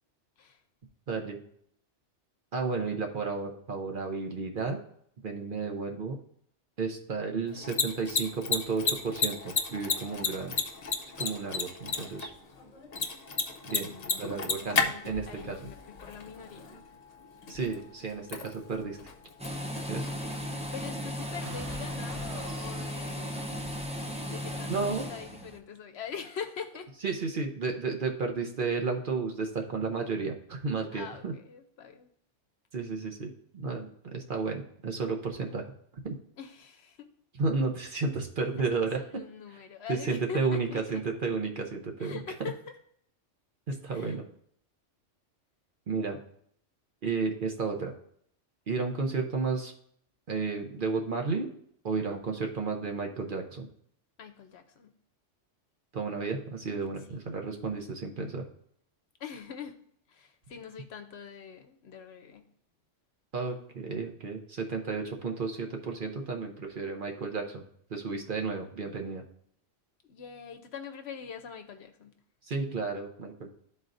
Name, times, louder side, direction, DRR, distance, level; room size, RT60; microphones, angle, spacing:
voice 1, 1.1-1.4 2.5-4.8 5.2-6.2 6.8-10.5 11.2-12.3 13.7-13.9 14.2-15.6 17.5-19.0 19.9-20.1 24.7-25.1 27.0-31.3 32.7-35.6 36.0-36.1 37.4-39.0 39.5-39.6 39.9-42.2 43.7-44.2 45.9-46.2 47.0-47.9 48.7-49.7 50.3-51.5 51.8-53.7 55.9-58.5 63.3-67.6 67.9-69.2 72.4-73.5, right 4 dB, 50° right, 3 dB, 0.8 m, -32 dB
Mechanisms, 7.5-21.1, left 5 dB, 45° left, 0.6 m, -34 dB
voice 2, 13.9-16.7 20.7-23.6 24.3-26.9 30.9-32.1 36.4-37.1 39.0-41.0 42.0-42.6 43.9-44.2 54.2-54.9 57.1-57.4 59.2-59.8 60.1-62.5 70.1-72.1, left 7 dB, 65° left, 7 dB, 0.9 m, -43 dB
sound 1, 19.4-25.6, equal, 10° right, 0.4 m, -36 dB
sound 2, 21.4-24.8, right 1 dB, 80° right, 1.5 m, -46 dB
12.0 x 4.1 x 2.5 m, 0.66 s
omnidirectional pair, 1.3 m